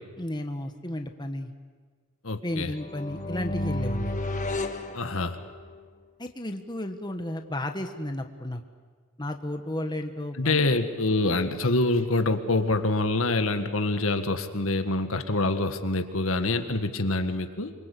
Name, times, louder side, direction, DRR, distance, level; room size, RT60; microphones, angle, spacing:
voice 1, 0.2-1.5 2.4-4.2 6.2-8.6 9.2-10.6, left 1 dB, 20° left, 5 dB, 1.4 m, -33 dB
voice 2, 2.2-2.7 4.9-5.4 10.4-17.7, left 2 dB, 75° left, 7 dB, 1.8 m, -26 dB
sound 1, 2.8-5.8, left 1 dB, 35° left, 1.6 m, -32 dB
27.5 x 24.0 x 8.4 m, 1.5 s
head